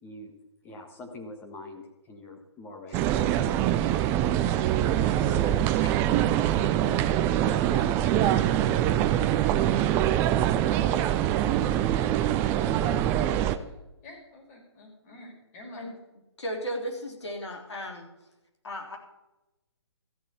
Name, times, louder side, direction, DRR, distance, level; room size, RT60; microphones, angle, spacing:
voice 1, 0.0-0.3 0.6-3.6 4.5-5.9 6.5-7.0, left 2 dB, 15° left, 2 dB, 1.6 m, -45 dB
sound 1, 2.9-13.6, right 11 dB, 15° right, 0.4 m, -24 dB
voice 2, 7.3-10.1 10.6-12.4 13.0-15.9, left 2 dB, 35° left, 0 dB, 5.1 m, -50 dB
voice 3, 16.4-18.1 18.6-19.0, equal, 70° left, 1 dB, 3.5 m, -35 dB
14.0 x 7.3 x 7.0 m, 0.98 s
figure-of-eight pair, 135°, 15 cm